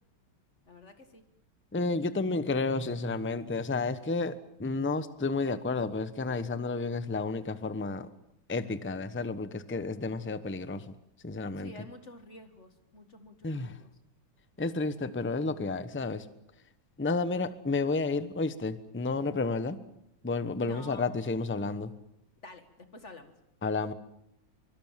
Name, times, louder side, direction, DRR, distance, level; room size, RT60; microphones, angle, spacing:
voice 1, 0.7-1.2 11.6-13.9 20.6-21.1 22.4-23.3, left 2 dB, 35° left, 8 dB, 2.1 m, -49 dB
voice 2, 1.7-8.1 8.5-10.9 11.2-11.7 13.4-13.8 14.6-16.3 17.0-19.8 20.2-21.9 23.6-23.9, left 3 dB, 10° left, 13 dB, 0.6 m, -31 dB
24.5 x 23.5 x 7.5 m, 0.79 s
omnidirectional pair, 2.1 m